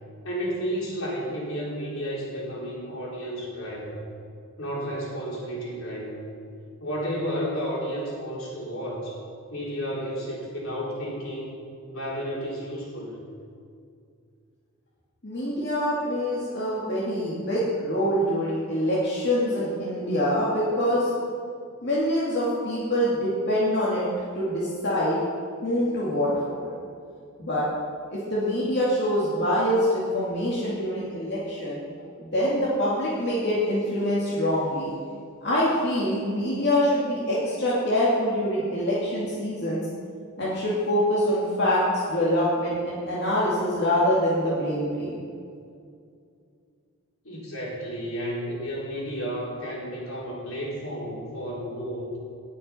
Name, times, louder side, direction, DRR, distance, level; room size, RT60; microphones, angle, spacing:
voice 1, 0.2-4.0 4.6-6.2 6.8-9.2 9.5-11.6 11.9-13.2 47.2-52.1, equal, 75° left, -4 dB, 3.6 m, -32 dB
voice 2, 15.2-21.1 21.8-24.1 24.3-25.2 25.6-26.7 27.4-27.7 28.1-31.8 32.2-34.9 35.4-39.8 40.4-45.2, equal, 50° left, -8 dB, 2.4 m, -25 dB
18.5 x 6.5 x 5.6 m, 2.3 s
head